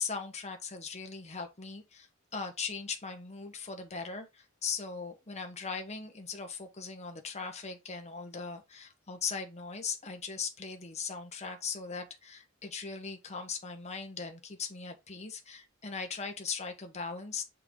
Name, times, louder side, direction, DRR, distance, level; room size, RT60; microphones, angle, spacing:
voice 1, 0.0-17.4, left 5 dB, 35° left, 1.2 m, -39 dB
5.9 x 4.6 x 3.7 m
head